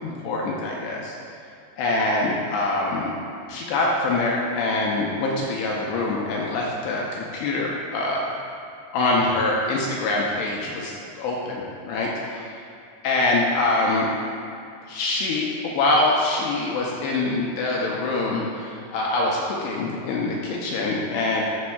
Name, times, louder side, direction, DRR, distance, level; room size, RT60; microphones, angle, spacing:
voice 1, 0.0-1.2 1.8-3.1 3.5-8.3 8.9-12.1 13.0-14.1 14.9-21.4, left 2 dB, 85° left, -3 dB, 2.4 m, -24 dB
13.0 x 5.2 x 2.3 m, 2.5 s
omnidirectional pair, 5.2 m